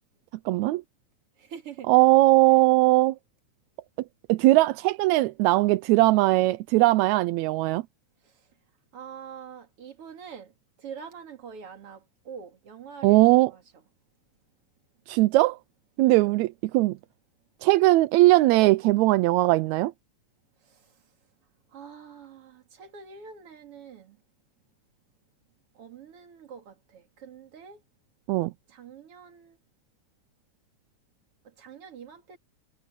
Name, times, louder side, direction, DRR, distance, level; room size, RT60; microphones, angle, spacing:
voice 1, 0.5-0.8 1.9-3.2 4.3-7.8 13.0-13.5 15.1-15.6 16.0-17.0 17.6-19.9 28.3-28.5, right 19 dB, 80° right, 1.7 m, -20 dB
voice 2, 1.4-1.9 5.9-6.2 8.2-8.3 8.9-10.5 10.8-13.6 16.0-16.3 20.7-20.9 21.7-24.2 25.7-27.8 28.7-29.6 31.4-32.4, right 7 dB, 50° right, 3.2 m, -45 dB
omnidirectional pair, 3.6 m